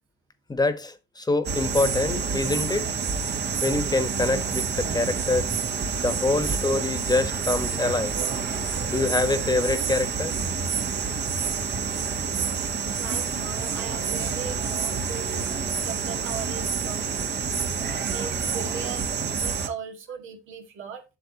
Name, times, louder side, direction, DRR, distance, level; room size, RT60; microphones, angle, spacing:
voice 1, 0.5-2.9 3.6-5.5 6.0-8.2 8.9-10.3, left 3 dB, 20° left, 1.2 m, -25 dB
sound 1, 1.4-19.7, right 6 dB, 60° right, 1.4 m, -28 dB
voice 2, 13.0-15.5 15.8-17.2 17.8-21.0, right 6 dB, 85° right, 1.9 m, -38 dB
7.7 x 6.6 x 2.9 m
cardioid pair, 90°, 20 cm